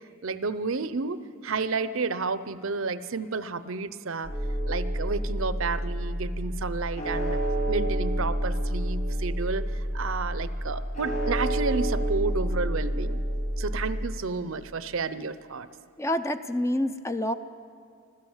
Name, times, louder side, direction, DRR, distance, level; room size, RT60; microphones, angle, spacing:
voice 1, 0.2-1.2 1.4-4.3 4.7-7.4 7.7-13.2 13.6-15.7, right 4 dB, 65° right, 14 dB, 0.7 m, -31 dB
sound 1, 4.2-14.1, right 1 dB, 40° left, 6.4 m, -29 dB
voice 2, 16.0-17.3, left 1 dB, 15° left, 9 dB, 0.5 m, -27 dB
25.5 x 15.5 x 7.2 m, 2.4 s
head